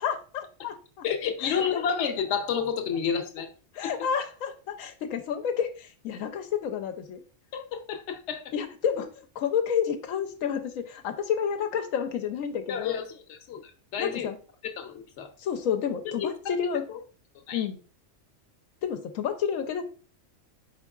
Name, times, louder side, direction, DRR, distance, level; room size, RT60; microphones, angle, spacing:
voice 1, 0.0-1.1 1.4-1.8 3.7-7.2 8.5-13.0 14.0-14.4 15.4-16.9 17.5-17.8 18.8-19.8, left 7 dB, 90° left, 6 dB, 1.0 m, -30 dB
voice 2, 1.0-3.5 3.8-3.9 7.5-8.4 12.7-14.3 14.8-15.3 16.0-16.3 16.9-17.0 17.5-17.6, left 7 dB, 65° left, 6 dB, 1.0 m, -30 dB
4.5 x 4.1 x 2.3 m, 0.38 s
omnidirectional pair, 1.3 m